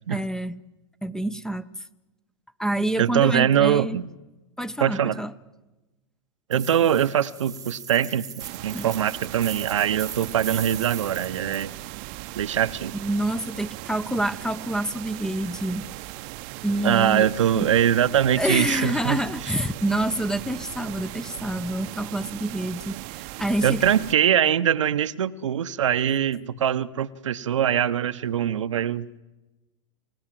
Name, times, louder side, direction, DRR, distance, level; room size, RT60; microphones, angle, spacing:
voice 1, 0.1-0.6 1.0-1.7 2.6-4.0 4.6-5.3 8.7-8.9 12.9-15.9 16.6-17.3 17.5-17.7 18.4-23.8, right 1 dB, 5° left, 17 dB, 0.8 m, -27 dB
voice 2, 3.0-4.1 4.8-5.2 6.5-11.7 12.3-13.0 16.8-19.5 23.6-29.0, right 9 dB, 80° right, 13 dB, 0.9 m, -23 dB
sound 1, 6.5-11.7, right 8 dB, 20° right, 1.2 m, -39 dB
sound 2, 8.4-24.1, right 20 dB, 50° right, 0.8 m, -38 dB
28.5 x 17.5 x 7.6 m, 1.1 s
hypercardioid pair, 110°, 16 cm